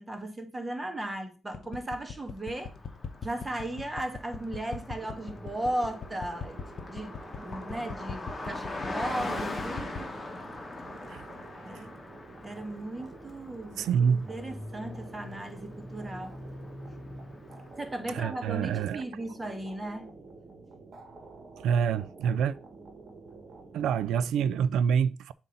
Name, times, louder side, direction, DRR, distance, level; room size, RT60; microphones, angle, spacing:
voice 1, 0.0-2.7 3.2-10.1 11.6-11.9 12.4-16.4 17.8-20.1, right 1 dB, 20° right, 1.4 m, -36 dB
sound 1, 1.5-10.1, left 6 dB, 60° left, 0.7 m, -39 dB
Car passing by, 2.4-18.5, left 2 dB, 25° left, 1.3 m, -42 dB
sound 2, 5.0-24.3, right 3 dB, 45° right, 1.3 m, -49 dB
voice 2, 13.8-14.3 18.1-19.0 21.6-22.6 23.7-25.3, right 7 dB, 80° right, 0.3 m, -26 dB
7.2 x 2.7 x 5.5 m
cardioid pair, 75°, 0 cm